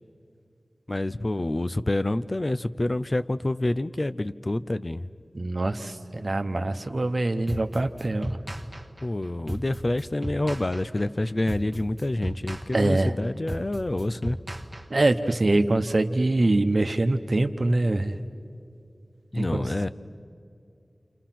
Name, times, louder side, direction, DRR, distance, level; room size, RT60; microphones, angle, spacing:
voice 1, 0.9-5.1 9.0-14.4 19.3-19.9, left 1 dB, 40° left, 12 dB, 0.5 m, -27 dB
voice 2, 5.3-8.4 12.7-13.1 14.9-18.1 19.3-19.9, right 2 dB, 60° right, 8 dB, 1.0 m, -24 dB
sound 1, 7.5-15.3, right 1 dB, 15° right, 1.3 m, -36 dB
28.5 x 27.5 x 5.9 m, 2.5 s
wide cardioid pair, 50°, 0 cm